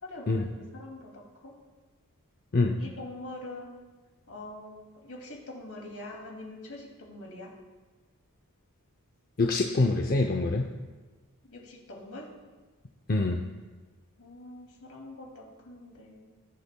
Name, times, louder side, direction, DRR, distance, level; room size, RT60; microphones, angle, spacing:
voice 1, 0.0-1.5 2.8-3.8 4.3-7.5 11.4-12.3 14.2-16.2, left 2 dB, 70° left, -1 dB, 2.5 m, -44 dB
voice 2, 9.4-10.7 13.1-13.4, left 2 dB, 40° left, 3 dB, 0.6 m, -25 dB
19.5 x 8.4 x 2.2 m, 1.3 s
head